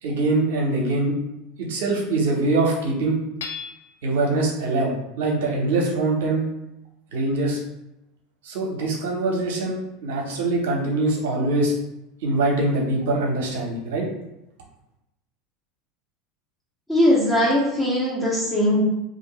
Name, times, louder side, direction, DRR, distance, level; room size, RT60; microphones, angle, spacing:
voice 1, 0.0-1.2 1.7-3.2 4.0-6.4 7.1-7.6 8.4-11.7 12.2-14.0, right 2 dB, 75° right, -1 dB, 0.8 m, -23 dB
Hammer / Chink clink, 3.4-4.2, left 6 dB, 80° left, 0.3 m, -36 dB
voice 2, 16.9-18.8, left 1 dB, 10° left, -6 dB, 0.8 m, -20 dB
2.5 x 2.5 x 3.0 m, 0.88 s
hypercardioid pair, 90°, 0 cm